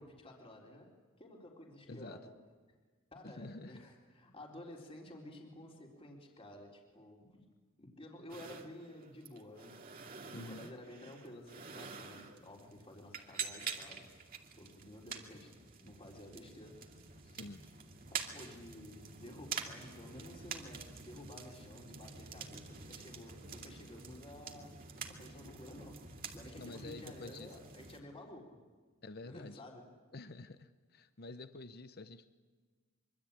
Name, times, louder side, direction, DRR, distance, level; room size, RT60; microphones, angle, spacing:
voice 1, 0.0-2.3 3.1-7.5 7.8-9.8 10.2-14.1 14.6-17.0 17.2-17.4 18.1-26.1 26.3-28.6 29.2-29.9, left 1 dB, 25° left, -1 dB, 3.9 m, -52 dB
voice 2, 1.9-2.2 3.2-3.8 10.3-10.7 17.4-17.6 26.6-27.6 29.0-29.6 30.1-32.3, left 2 dB, 50° left, 10 dB, 0.9 m, -48 dB
sound 1, 8.3-28.0, right 6 dB, 45° right, 2.5 m, -47 dB
25.0 x 24.5 x 8.9 m, 1.4 s
head